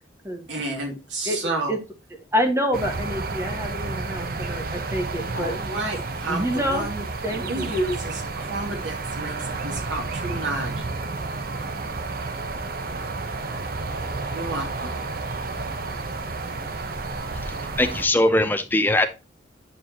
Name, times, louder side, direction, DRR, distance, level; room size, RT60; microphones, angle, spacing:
voice 1, 0.5-1.8 5.3-10.9 14.3-14.9, right 2 dB, 90° right, 1 dB, 2.4 m, -31 dB
voice 2, 2.3-5.5 6.3-6.9 7.2-7.7, equal, 15° right, 4 dB, 1.4 m, -27 dB
sound 1, 2.7-18.1, right 3 dB, 50° right, 0.8 m, -31 dB
voice 3, 17.8-19.1, left 1 dB, 10° left, 8 dB, 0.7 m, -20 dB
9.1 x 4.7 x 2.8 m, 0.29 s
head